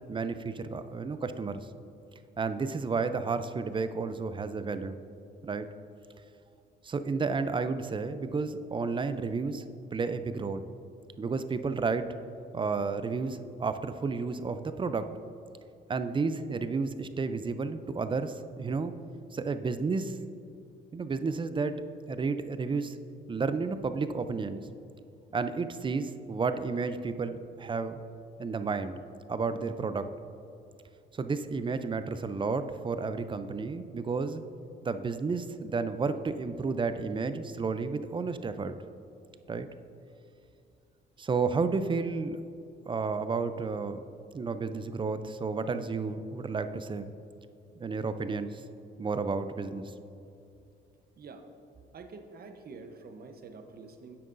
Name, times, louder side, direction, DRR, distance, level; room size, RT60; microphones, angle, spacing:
voice 1, 0.1-1.7 2.4-5.0 5.4-5.7 6.8-9.6 9.9-10.7 11.2-12.1 12.5-15.1 15.9-18.9 19.3-20.2 20.9-21.8 22.1-23.0 23.3-24.6 25.3-28.0 28.4-29.0 29.3-30.1 31.2-34.4 34.8-38.7 39.5-39.7 41.2-42.4 42.9-44.0 44.3-47.1 47.8-48.6 49.0-49.9, right 4 dB, 25° right, 10 dB, 0.4 m, -31 dB
voice 2, 51.2-51.5 51.9-54.2, right 4 dB, 50° right, 6 dB, 0.8 m, -47 dB
10.0 x 7.6 x 2.6 m, 2.7 s
cardioid pair, 90°, 20 cm